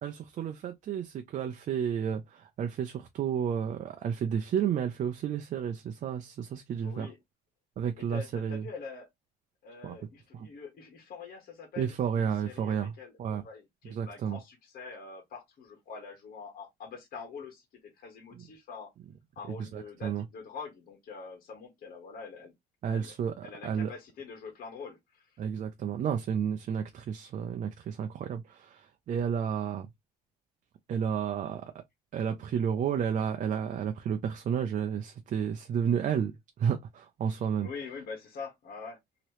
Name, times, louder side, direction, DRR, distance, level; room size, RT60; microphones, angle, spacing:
voice 1, 0.0-7.1 7.8-8.6 9.8-9.9 10.3-10.5 11.8-12.9 13.2-13.4 13.9-14.4 18.4-18.5 19.6-20.2 22.8-23.9 25.4-29.9 30.9-31.6 32.1-36.3 36.6-37.7, right 8 dB, 50° right, 0.5 m, -31 dB
voice 2, 6.8-7.2 8.0-9.1 9.6-17.6 18.0-18.9 19.3-22.5 22.9-23.1 23.4-25.3 37.6-39.0, left 5 dB, 60° left, 1.3 m, -44 dB
3.0 x 2.9 x 2.9 m
cardioid pair, 110°, 17 cm